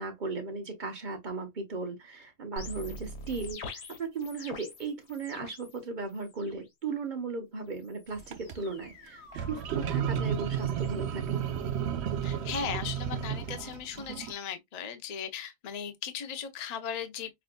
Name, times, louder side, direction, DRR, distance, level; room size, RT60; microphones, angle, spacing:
voice 1, 0.0-11.4, right 4 dB, 30° right, 1.1 m, -37 dB
sound 1, 2.6-5.8 6.1-6.7 7.7-11.8, left 2 dB, 80° left, 1.9 m, -47 dB
sound 2, 8.2-8.6 9.3-14.3, right 8 dB, 75° right, 0.6 m, -32 dB
voice 2, 12.2-17.3, left 7 dB, 60° left, 0.4 m, -37 dB
5.9 x 2.5 x 2.2 m
omnidirectional pair, 1.7 m